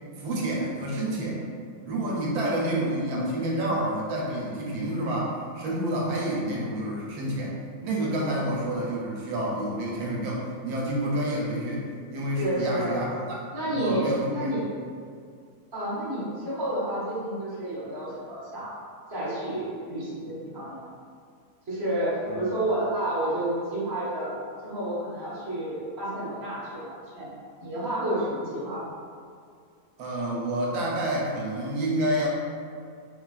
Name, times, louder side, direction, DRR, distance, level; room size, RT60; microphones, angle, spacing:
voice 1, 0.2-1.4 1.8-7.6 7.8-13.1 13.5-14.6 22.3-22.5 30.0-32.3, right 1 dB, 85° right, -3 dB, 1.1 m, -29 dB
voice 2, 12.4-13.0 13.5-14.7 15.7-18.8 19.1-20.8 21.7-24.3 24.6-27.3 27.6-28.9, right 1 dB, 25° right, -9 dB, 0.5 m, -30 dB
3.3 x 2.3 x 2.3 m, 2.2 s
omnidirectional pair, 1.5 m